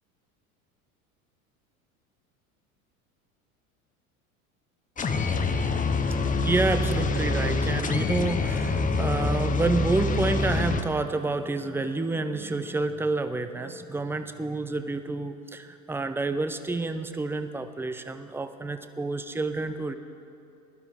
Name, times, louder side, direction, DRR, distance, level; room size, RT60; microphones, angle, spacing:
sound 1, 5.0-10.8, left 3 dB, 20° left, 0.9 m, -26 dB
voice 1, 6.4-19.9, right 3 dB, 5° right, 9 dB, 0.6 m, -29 dB
21.0 x 12.0 x 3.6 m, 2.8 s
hypercardioid pair, 85°, 43 cm